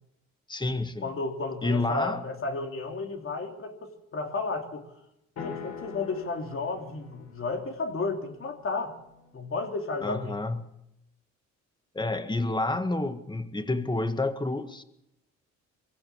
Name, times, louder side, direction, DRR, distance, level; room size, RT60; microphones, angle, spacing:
voice 1, 0.5-1.1 1.6-2.2 10.0-10.7 11.9-14.8, left 2 dB, 15° left, 1.8 m, -29 dB
voice 2, 1.0-4.9 5.4-9.0 9.3-10.3, left 3 dB, 45° left, 3.2 m, -33 dB
sound 1, 5.4-9.5, left 7 dB, 65° left, 4.7 m, -44 dB
22.5 x 16.0 x 7.1 m
cardioid pair, 90°, 30 cm